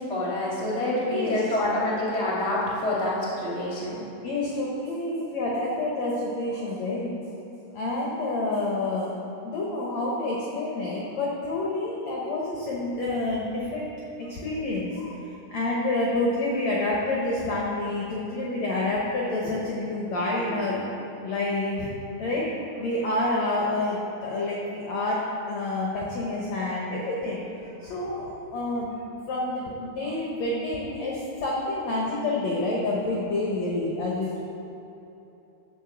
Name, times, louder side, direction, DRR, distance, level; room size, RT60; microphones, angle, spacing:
voice 1, 0.0-4.0, left 1 dB, 5° left, -6 dB, 0.6 m, -27 dB
voice 2, 1.0-1.4 4.2-7.2 7.7-9.1 9.4-13.9 14.2-15.2 15.5-20.8 21.2-21.9 22.2-22.5 22.8-34.4, left 2 dB, 75° left, -4 dB, 1.6 m, -28 dB
11.0 x 4.8 x 7.2 m, 3.0 s
omnidirectional pair, 4.7 m